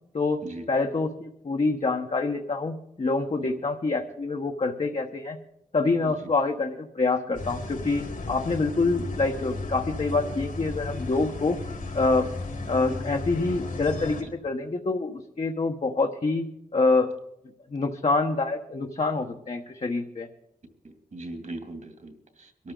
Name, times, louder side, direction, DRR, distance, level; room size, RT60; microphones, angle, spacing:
voice 1, 0.1-5.4 5.7-11.6 11.9-12.3 12.7-16.5 16.7-17.1 17.7-20.3, left 3 dB, 50° left, 2 dB, 1.2 m, -26 dB
sound 1, 7.3-14.2, left 2 dB, 80° left, 4.2 m, -34 dB
voice 2, 20.8-22.7, right 2 dB, 60° right, 5 dB, 2.6 m, -40 dB
23.0 x 13.0 x 3.9 m, 0.83 s
cardioid pair, 60°, 14 cm